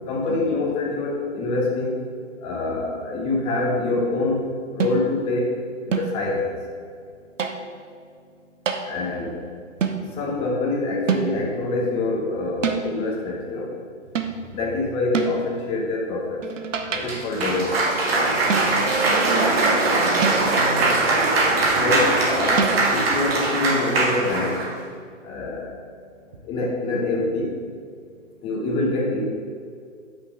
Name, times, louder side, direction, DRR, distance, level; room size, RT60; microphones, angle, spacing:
voice 1, 0.1-2.0 2.4-4.5 4.7-5.5 5.9-6.5 8.9-9.3 10.2-13.7 14.5-16.4 16.9-17.8 21.7-24.6 25.2-25.7 26.5-27.5 28.4-29.3, left 2 dB, 15° left, -1 dB, 1.0 m, -25 dB
sound 1, 4.8-5.2 5.9-6.3 7.4-7.8 8.7-8.9 9.8-10.1 11.1-11.6 12.6-13.0 14.2-14.5 15.1-15.5 16.4-17.3 18.5-19.0 20.2-20.8 22.6-22.8, right 6 dB, 70° right, 0.9 m, -26 dB
Cheering / Applause, 17.0-24.7, right 2 dB, 50° right, 2.0 m, -21 dB
voice 2, 19.0-21.0, right 3 dB, 25° right, -2 dB, 0.5 m, -33 dB
6.0 x 5.5 x 6.2 m, 2.1 s
hypercardioid pair, 140°, 39 cm